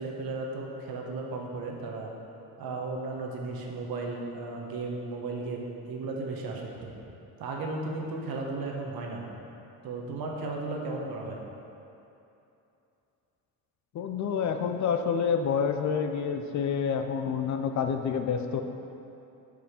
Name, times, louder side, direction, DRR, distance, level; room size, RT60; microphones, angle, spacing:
voice 1, 0.0-2.1 2.6-6.9 7.4-9.3 9.8-11.4, right 3 dB, 65° right, 0 dB, 1.2 m, -35 dB
voice 2, 13.9-18.6, left 6 dB, 45° left, 6 dB, 0.5 m, -28 dB
5.3 x 5.1 x 6.5 m, 2.8 s
cardioid pair, 110°, 39 cm